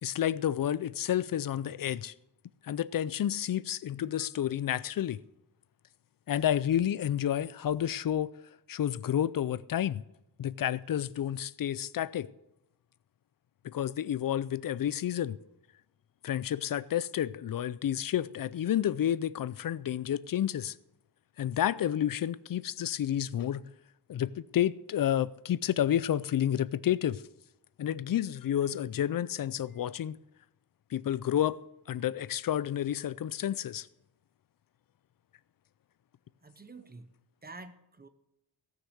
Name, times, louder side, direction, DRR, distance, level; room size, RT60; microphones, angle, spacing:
voice 1, 0.0-2.1 2.6-5.2 6.3-8.3 8.7-10.0 10.4-12.3 13.6-15.4 16.2-20.8 21.4-23.7 24.1-27.2 27.8-30.2 30.9-31.6 31.9-33.9, left 10 dB, 55° left, 0.4 m, -30 dB
voice 2, 36.4-37.1 37.4-38.1, right 3 dB, 20° right, 0.8 m, -48 dB
17.0 x 6.6 x 6.5 m
wide cardioid pair, 180°, 43 cm